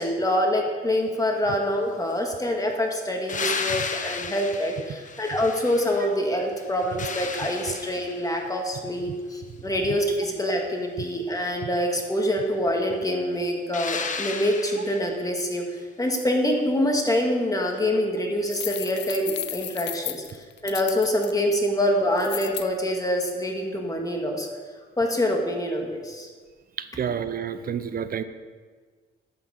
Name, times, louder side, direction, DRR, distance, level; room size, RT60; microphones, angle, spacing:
voice 1, 0.0-15.6 16.0-24.5 25.0-26.3, equal, 15° left, 1 dB, 1.8 m, -25 dB
sound 1, 3.3-6.2 6.6-8.4 13.7-15.2 17.7-17.8, left 5 dB, 40° left, 1.1 m, -33 dB
sound 2, 18.5-21.3 22.2-22.7, left 11 dB, 60° left, 0.6 m, -34 dB
voice 2, 27.0-28.2, right 8 dB, 45° right, 11 dB, 0.7 m, -29 dB
10.5 x 5.9 x 7.1 m, 1.5 s
cardioid pair, 90°, 20 cm